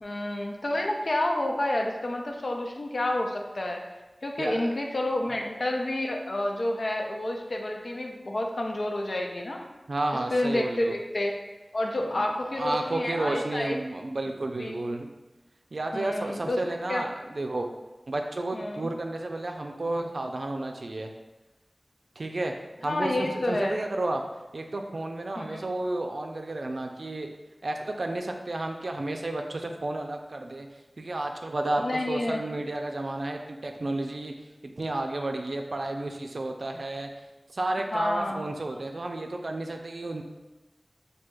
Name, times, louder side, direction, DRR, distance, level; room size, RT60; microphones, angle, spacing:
voice 1, 0.0-3.8 4.2-9.6 10.3-11.3 11.7-13.8 14.6-14.8 15.9-16.6 16.9-17.0 18.5-18.9 22.9-23.8 25.4-25.6 31.8-32.4 37.9-38.4, left 1 dB, 70° left, 1 dB, 0.5 m, -29 dB
voice 2, 4.4-4.7 5.2-5.4 9.9-11.0 12.0-15.1 15.7-17.7 18.1-21.1 22.2-22.5 22.8-24.2 24.5-27.3 27.6-30.7 31.0-34.3 34.8-37.1 37.5-40.2, right 2 dB, 80° right, 3 dB, 0.4 m, -32 dB
5.9 x 2.7 x 2.3 m, 1.1 s
wide cardioid pair, 55°, 0 cm